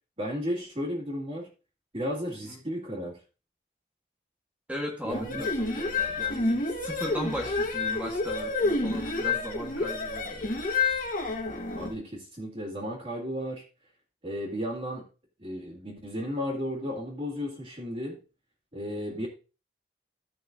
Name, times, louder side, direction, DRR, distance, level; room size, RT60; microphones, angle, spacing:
voice 1, 0.2-1.5 1.9-3.2 5.0-5.4 11.7-13.6 14.2-15.0 15.4-18.2 18.7-19.3, equal, 30° right, 2.4 m, -34 dB
voice 2, 4.7-10.6 19.1-19.3, equal, 5° right, 1.3 m, -37 dB
sound 1, 5.1-11.9, left 3 dB, 45° left, 1.5 m, -29 dB
15.0 x 6.0 x 2.7 m
head